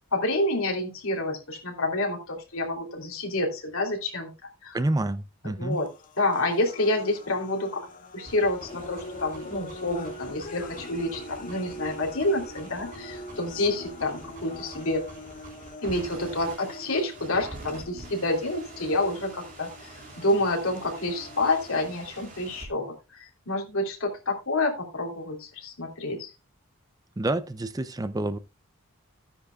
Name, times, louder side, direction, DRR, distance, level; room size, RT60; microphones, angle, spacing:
voice 1, 0.1-4.8 5.5-5.9 6.2-7.8 8.1-15.0 15.8-26.3, left 2 dB, 70° left, 3.1 m, -28 dB
voice 2, 4.7-5.8 27.2-28.4, right 2 dB, 15° right, 0.5 m, -28 dB
sound 1, 5.7-21.7, equal, 35° left, 1.2 m, -43 dB
sound 2, 8.2-22.7, right 2 dB, 40° right, 4.0 m, -46 dB
14.5 x 9.9 x 2.3 m
head